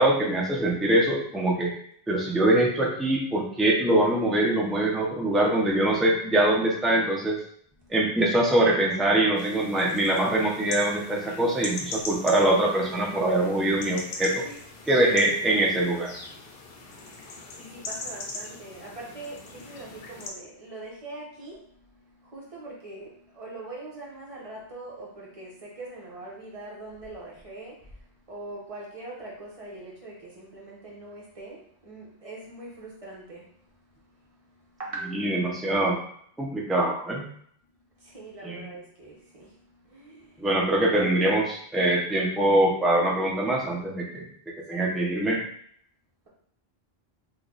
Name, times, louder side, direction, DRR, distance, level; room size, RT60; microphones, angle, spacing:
voice 1, 0.0-1.7 2.1-7.4 7.9-14.4 14.9-16.1 35.1-36.0 36.4-37.3 38.4-38.7 40.4-44.3 44.7-45.4, right 1 dB, ahead, -2 dB, 0.4 m, -23 dB
sound 1, 9.3-20.3, left 3 dB, 65° left, 0.8 m, -40 dB
voice 2, 17.0-33.5 33.9-35.3 38.0-40.5 44.7-45.1, right 2 dB, 35° right, -4 dB, 1.0 m, -42 dB
3.1 x 2.2 x 3.8 m, 0.63 s
omnidirectional pair, 1.1 m